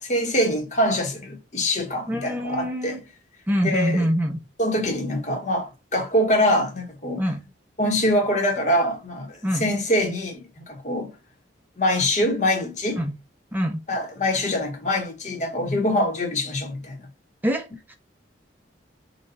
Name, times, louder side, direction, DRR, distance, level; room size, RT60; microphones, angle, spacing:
voice 1, 0.0-3.0 3.6-4.1 4.6-7.2 7.8-11.1 11.8-13.0 13.9-17.0, left 1 dB, 40° left, 1.2 m, -24 dB
voice 2, 2.1-3.0 3.5-4.4 7.2-7.4 9.4-9.7 13.0-13.1 13.5-13.8 17.4-17.9, equal, 10° right, 0.7 m, -25 dB
4.1 x 2.5 x 4.0 m
head